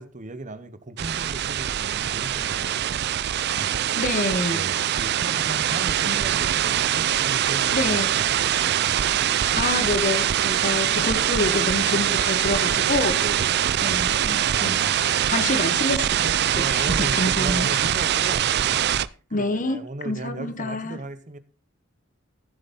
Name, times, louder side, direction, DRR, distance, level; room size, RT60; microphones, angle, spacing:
voice 1, 0.0-3.1 3.6-3.7 4.5-9.1 13.2-14.3 14.6-15.4 16.4-21.4, right 2 dB, 40° right, 1.0 m, -37 dB
sound 1, 1.0-19.1, right 10 dB, 55° right, 0.4 m, -23 dB
voice 2, 4.0-4.6 6.0-6.2 7.7-8.1 9.5-13.2 13.8-14.7 15.3-17.7 19.3-21.0, left 2 dB, 40° left, 1.1 m, -27 dB
14.5 x 7.5 x 4.2 m
head